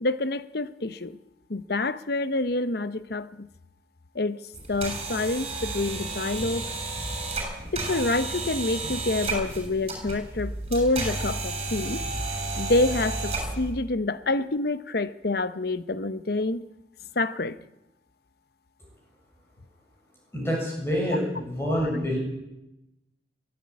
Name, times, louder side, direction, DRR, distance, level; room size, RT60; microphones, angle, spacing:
voice 1, 0.0-1.2 1.5-3.5 4.1-4.4 4.7-6.6 7.7-12.0 12.6-16.6 17.2-17.6, left 2 dB, 55° left, 13 dB, 0.9 m, -27 dB
sound 1, 4.5-13.7, right 2 dB, 30° right, 7.0 m, -32 dB
voice 2, 20.3-22.2, equal, 15° left, -2 dB, 7.0 m, -27 dB
23.0 x 14.0 x 8.6 m, 0.92 s
head